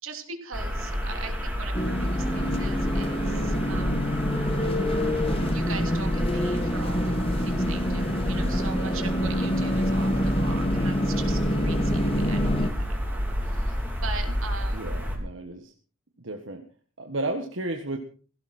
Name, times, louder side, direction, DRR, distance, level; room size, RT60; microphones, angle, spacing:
voice 1, 0.0-4.1 5.5-14.9, right 5 dB, 85° right, 6 dB, 3.0 m, -41 dB
sound 1, 0.5-15.2, equal, 10° right, 3.1 m, -30 dB
sound 2, 1.7-12.7, equal, 25° left, 1.5 m, -27 dB
voice 2, 14.7-15.7 16.2-16.7 17.0-18.0, right 2 dB, 65° right, 4 dB, 1.7 m, -33 dB
17.0 x 17.0 x 4.5 m, 0.41 s
head